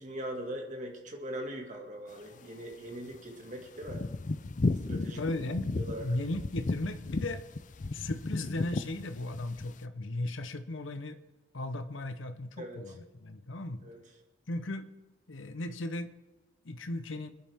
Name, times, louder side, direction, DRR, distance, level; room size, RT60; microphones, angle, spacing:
voice 1, 0.0-4.0 4.8-5.2 5.8-6.1 12.6-12.8 13.8-14.0, equal, 40° right, 2.1 m, -40 dB
sound 1, 3.1-3.2 3.6-9.6, left 2 dB, 40° left, 0.5 m, -34 dB
voice 2, 5.2-5.7 6.0-7.4 7.9-11.2 11.5-13.8 14.5-14.9 15.3-16.1 16.6-17.3, left 2 dB, 80° left, 0.9 m, -36 dB
23.5 x 10.5 x 3.6 m
head